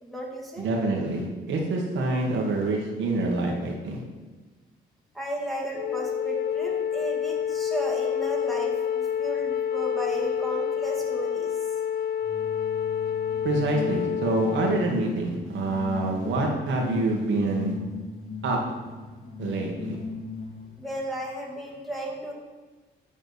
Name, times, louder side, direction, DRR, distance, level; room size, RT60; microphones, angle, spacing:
voice 1, 0.0-0.7 5.1-11.5 20.8-22.3, right 1 dB, ahead, -3 dB, 2.0 m, -34 dB
voice 2, 0.6-4.0 13.4-17.7 18.4-18.6 19.4-20.0, right 2 dB, 75° right, 0 dB, 1.8 m, -26 dB
Wind instrument woodwind instrument, 5.7-14.9, left 8 dB, 50° left, 0.5 m, -28 dB
sound 1, 12.2-20.8, left 4 dB, 30° left, 1.7 m, -38 dB
8.9 x 3.7 x 7.0 m, 1.3 s
cardioid pair, 90°, 20 cm